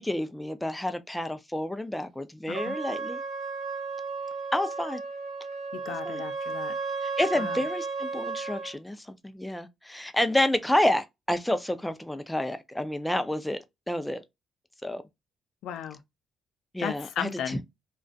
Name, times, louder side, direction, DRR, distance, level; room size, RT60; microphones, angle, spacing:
voice 1, 0.0-3.2 4.5-5.0 6.1-6.2 7.0-14.2 14.8-15.0 16.7-17.6, left 1 dB, 5° left, 0.4 m, -29 dB
Trumpet, 2.5-8.7, right 4 dB, 50° right, 1.1 m, -34 dB
voice 2, 5.7-6.7 7.4-7.6 15.6-16.0 16.8-17.6, left 9 dB, 80° left, 0.4 m, -35 dB
2.4 x 2.2 x 2.3 m
cardioid pair, 90°, 0 cm